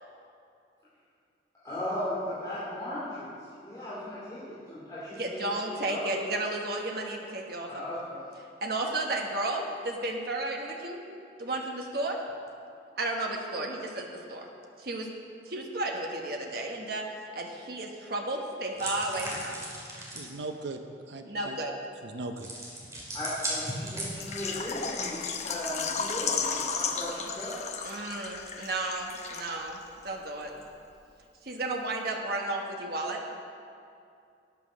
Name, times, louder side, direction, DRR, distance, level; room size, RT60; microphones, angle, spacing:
voice 1, 1.6-3.3 3.6-5.4 5.9-6.0 7.7-8.0 23.1-27.6, left 1 dB, 20° left, -12 dB, 2.8 m, -36 dB
voice 2, 5.2-7.8 8.6-11.0 11.4-12.2 13.0-14.5 14.8-15.1 15.4-19.6 21.2-21.7 27.8-30.5 31.4-33.2, right 2 dB, 55° right, 1 dB, 1.3 m, -33 dB
sound 1, 18.8-20.3 22.4-24.5, right 1 dB, 15° right, 2.3 m, -37 dB
voice 3, 20.1-20.8 21.1-21.6 22.0-22.5, right 2 dB, 75° right, 6 dB, 0.6 m, -38 dB
Water / Liquid, 24.2-29.8 30.1-30.2 30.6-30.7, left 5 dB, 40° left, 0.8 m, -34 dB
9.6 x 9.0 x 6.3 m, 2.5 s
head